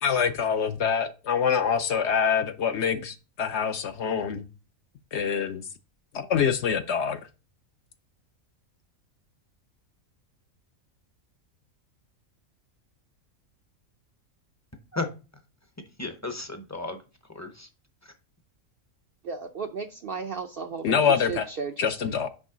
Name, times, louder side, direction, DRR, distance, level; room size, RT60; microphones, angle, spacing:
voice 1, 0.0-4.5 5.1-5.6 6.1-7.2 20.8-21.5 21.8-22.3, left 7 dB, 65° left, 0.8 m, -25 dB
voice 2, 16.0-17.7 18.0-18.1, left 3 dB, 20° left, 0.5 m, -34 dB
voice 3, 19.2-22.2, right 5 dB, 60° right, 0.6 m, -35 dB
6.1 x 5.2 x 3.7 m
omnidirectional pair, 1.4 m